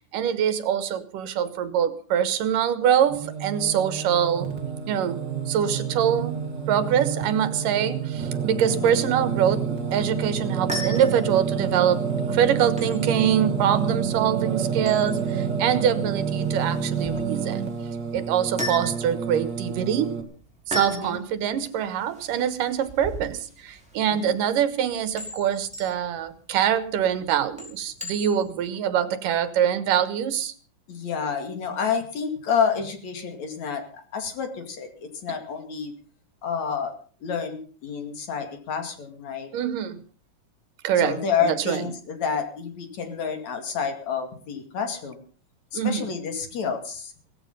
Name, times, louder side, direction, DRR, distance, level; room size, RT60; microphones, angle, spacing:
voice 1, 0.1-4.5 4.9-5.2 5.5-6.4 6.7-17.7 18.1-20.2 20.7-30.5 39.5-40.0 40.8-41.2 41.4-41.8 45.7-46.1, right 9 dB, 85° right, 13 dB, 3.0 m, -24 dB
Singing, 3.1-20.2, right 6 dB, 35° right, 2.6 m, -28 dB
voice 2, 8.7-9.0 20.9-21.2 24.1-24.3 30.9-35.9 36.4-36.9 37.2-39.5 41.0-45.2 45.7-47.1, left 6 dB, 60° left, 5 dB, 3.6 m, -29 dB
sound 1, 10.4-28.7, left 1 dB, ahead, 5.6 m, -39 dB
17.0 x 15.0 x 5.5 m, 0.42 s
omnidirectional pair, 3.7 m